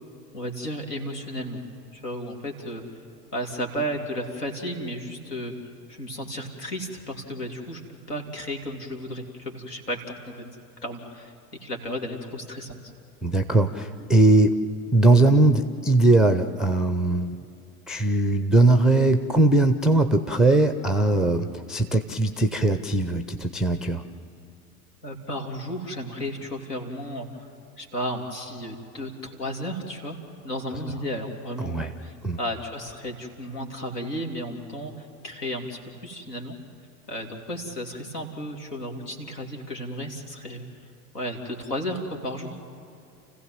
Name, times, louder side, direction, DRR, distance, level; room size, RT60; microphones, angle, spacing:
voice 1, 0.3-1.6 1.9-3.0 3.3-5.5 5.9-7.8 8.1-10.4 10.8-11.3 11.6-12.9 25.0-27.5 27.8-30.2 30.4-36.6 37.1-40.6 41.1-42.6, equal, 75° left, 3 dB, 2.9 m, -33 dB
voice 2, 13.2-14.6 14.9-17.4 17.9-24.0 31.6-31.9 32.2-32.4, right 2 dB, ahead, 9 dB, 0.5 m, -20 dB
29.0 x 15.5 x 7.5 m, 2.7 s
figure-of-eight pair, 85°, 47 cm